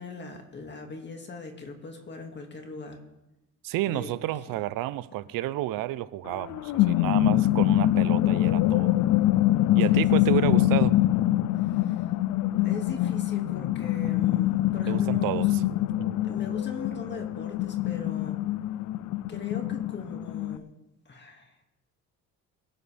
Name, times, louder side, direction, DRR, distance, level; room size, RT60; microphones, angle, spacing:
voice 1, 0.0-3.0 3.9-4.1 9.9-10.0 11.6-12.1 12.6-15.5 16.2-18.4 19.3-20.6 21.1-21.6, left 4 dB, 35° left, 2.1 m, -40 dB
voice 2, 3.6-9.0 9.7-10.9 14.9-15.6 16.1-16.2, right 15 dB, 85° right, 0.7 m, -30 dB
sound 1, 6.3-20.6, left 15 dB, 65° left, 0.5 m, -24 dB
23.5 x 10.5 x 3.4 m
cardioid pair, 120°, 33 cm